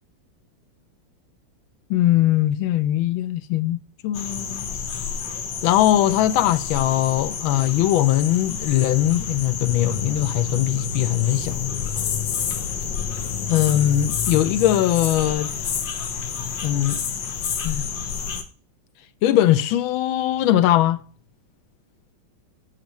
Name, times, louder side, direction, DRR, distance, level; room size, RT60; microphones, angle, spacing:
voice 1, 1.9-3.8 4.0-4.7 5.6-11.7 13.5-15.5 16.6-17.0 17.6-17.9 19.2-21.0, left 13 dB, 90° left, 1.4 m, -20 dB
sound 1, 4.1-18.4, left 7 dB, 70° left, 1.6 m, -29 dB
9.3 x 6.2 x 3.0 m
omnidirectional pair, 2.2 m